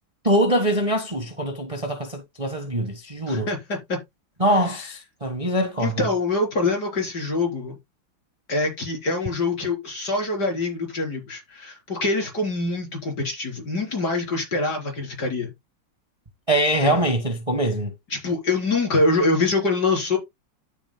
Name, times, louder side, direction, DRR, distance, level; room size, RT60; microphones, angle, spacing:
voice 1, 0.2-3.5 4.4-6.0 16.5-17.9, right 1 dB, 20° right, 1.3 m, -23 dB
voice 2, 3.3-4.0 4.8-4.9 5.8-7.8 8.5-15.5 16.8-17.1 18.1-20.2, left 3 dB, 55° left, 4.6 m, -25 dB
13.0 x 7.3 x 2.2 m
omnidirectional pair, 2.2 m